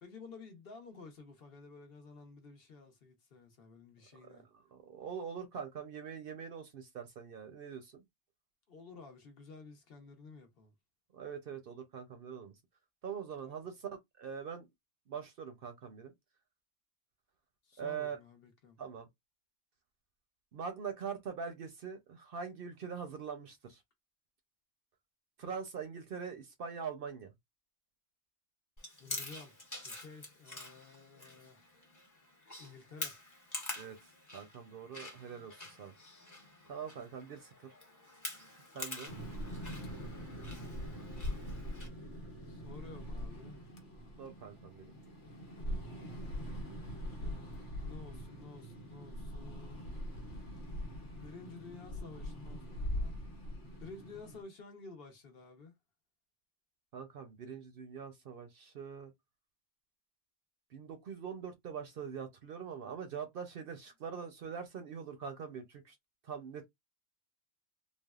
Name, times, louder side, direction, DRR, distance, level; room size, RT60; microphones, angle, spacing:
voice 1, 0.0-4.4 8.7-10.7 13.4-13.7 17.6-18.8 29.0-31.8 32.6-33.2 38.7-39.5 42.4-43.6 47.2-49.9 50.8-53.5 53.8-55.7, left 4 dB, 55° left, 1.0 m, -53 dB
voice 2, 4.7-8.0 11.1-12.6 13.0-13.9 14.2-14.7 15.1-16.1 17.8-18.2 18.8-19.1 20.5-23.8 25.4-27.3 33.7-34.0 34.3-35.9 36.7-37.7 38.7-39.1 44.2-44.9 56.9-59.1 60.7-66.0 66.2-66.7, right 6 dB, 60° right, 0.7 m, -43 dB
Chewing mastication, 28.8-41.9, left 2 dB, 15° left, 0.8 m, -47 dB
sound 1, 39.1-54.4, equal, 85° left, 1.2 m, -42 dB
3.4 x 2.1 x 2.3 m
omnidirectional pair, 1.2 m